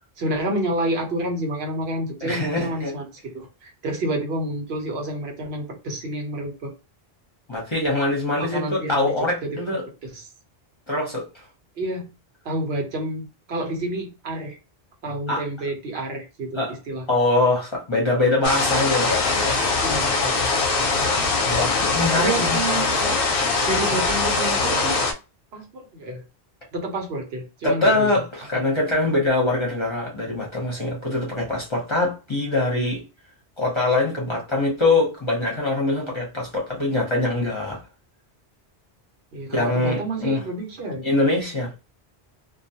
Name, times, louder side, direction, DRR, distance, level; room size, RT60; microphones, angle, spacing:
voice 1, 0.2-6.7 8.4-10.3 11.8-12.1 12.4-14.6 15.0-17.0 19.8-20.5 22.0-23.2 23.7-25.0 25.5-26.2 26.7-28.1 39.3-41.1, right 1 dB, 75° right, 1.0 m, -29 dB
voice 2, 2.2-2.9 7.5-9.8 10.9-11.2 15.3-15.4 16.5-16.7 17.1-19.6 21.5-22.6 27.6-33.0 33.6-37.8 39.5-40.4 41.0-41.7, left 2 dB, 30° left, 0.7 m, -23 dB
sound 1, 18.4-25.1, left 3 dB, 65° left, 0.7 m, -22 dB
2.3 x 2.2 x 2.7 m
omnidirectional pair, 1.1 m